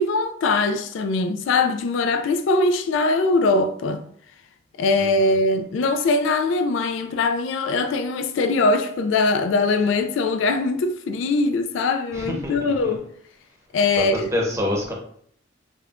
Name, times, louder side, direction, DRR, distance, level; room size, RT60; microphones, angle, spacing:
voice 1, 0.0-4.0 4.8-13.0 13.7-14.3, left 3 dB, 70° left, 0.3 m, -21 dB
voice 2, 12.1-12.9 13.9-14.9, left 1 dB, 15° right, 0.8 m, -27 dB
5.1 x 2.2 x 2.5 m
head